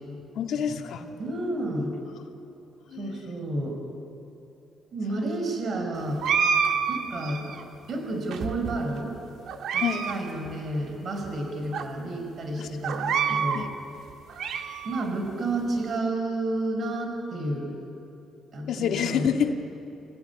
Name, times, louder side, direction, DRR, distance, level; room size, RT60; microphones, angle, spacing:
voice 1, 0.4-1.1 2.9-3.2 9.8-10.1 12.6-12.8 13.3-13.7 18.7-19.6, left 8 dB, 70° left, 3 dB, 2.0 m, -28 dB
voice 2, 1.2-2.0 3.0-3.8 4.9-6.2 6.9-7.5 7.9-9.2 9.7-13.7 14.8-17.8 18.5-19.3, right 2 dB, 55° right, 3 dB, 5.3 m, -30 dB
sound 1, 6.2-7.6 8.3-9.0 9.5-10.2 10.5-10.6 11.2-11.3 11.7-11.8 12.8-13.6 14.1-15.1, right 6 dB, 75° right, 1.7 m, -27 dB
28.5 x 16.5 x 9.6 m, 2.8 s
cardioid pair, 90°, 0 cm